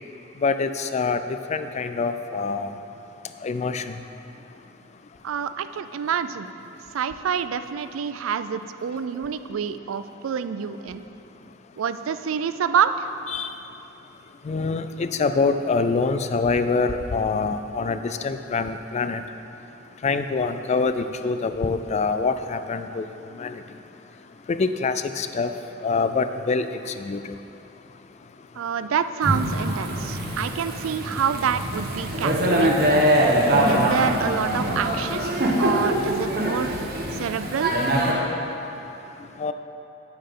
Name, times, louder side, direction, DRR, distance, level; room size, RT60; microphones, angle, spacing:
voice 1, 0.4-1.2 1.5-2.7 3.4-3.9 13.3-13.5 14.5-19.2 20.0-23.0 23.4-23.5 24.5-25.5 25.8-26.7 27.0-27.2 39.4-39.5, left 4 dB, 35° left, 10 dB, 0.3 m, -25 dB
voice 2, 5.2-6.5 6.9-11.0 11.8-13.1 28.6-32.9 33.6-35.2 35.6-36.7 37.1-37.7, right 7 dB, 80° right, 12 dB, 0.4 m, -27 dB
Thunder / Rain, 29.2-38.1, right 1 dB, 50° right, 1.1 m, -23 dB
8.8 x 8.6 x 3.7 m, 2.8 s
head